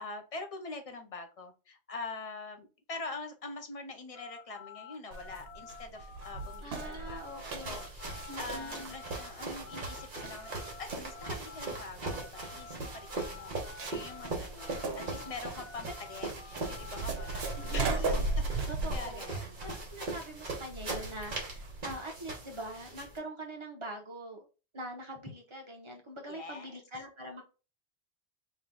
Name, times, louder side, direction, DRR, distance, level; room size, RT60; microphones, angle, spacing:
voice 1, 0.0-19.6 26.3-26.7, left 3 dB, 45° left, 5 dB, 0.5 m, -44 dB
sound 1, 4.1-14.3 14.6-17.8, left 5 dB, 70° left, 1.3 m, -49 dB
sound 2, 5.1-21.9, right 2 dB, 70° right, 1.0 m, -38 dB
voice 2, 6.6-7.8 8.3-8.9 17.6-18.2 18.7-24.5 24.7-27.4, right 1 dB, 30° right, 1 dB, 0.8 m, -43 dB
sound 3, 7.2-23.2, right 3 dB, 50° right, 1.2 m, -41 dB
3.1 x 2.8 x 3.7 m, 0.33 s
omnidirectional pair, 1.1 m